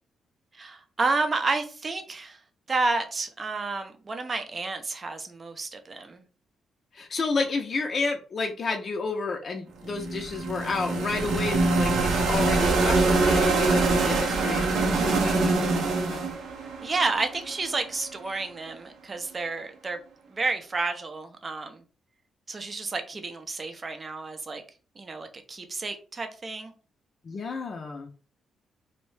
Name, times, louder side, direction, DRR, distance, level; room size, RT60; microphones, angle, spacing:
voice 1, 0.5-2.4 2.7-6.2 16.8-20.0 20.3-21.8 22.5-24.6 25.0-26.7, right 3 dB, 35° right, 0.5 m, -30 dB
voice 2, 6.9-16.3 27.2-28.1, left 4 dB, 45° left, 0.4 m, -31 dB
sound 1, 9.8-17.9, right 3 dB, 80° right, 0.6 m, -24 dB
2.7 x 2.1 x 3.1 m
cardioid pair, 95°, 0 cm